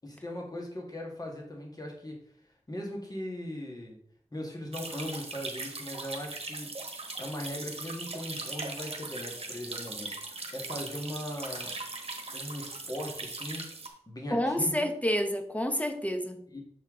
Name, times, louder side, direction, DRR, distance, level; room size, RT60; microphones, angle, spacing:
voice 1, 0.0-2.2 2.7-4.0 4.3-6.7 7.2-11.7 12.3-13.6 14.1-14.8 16.5-16.6, left 1 dB, 35° left, 0 dB, 1.7 m, -39 dB
sound 1, 4.7-13.9, right 3 dB, 55° right, 1.1 m, -39 dB
voice 2, 14.3-16.4, equal, 10° left, 6 dB, 0.8 m, -29 dB
6.8 x 4.4 x 3.7 m, 0.66 s
wide cardioid pair, 65°, 12 cm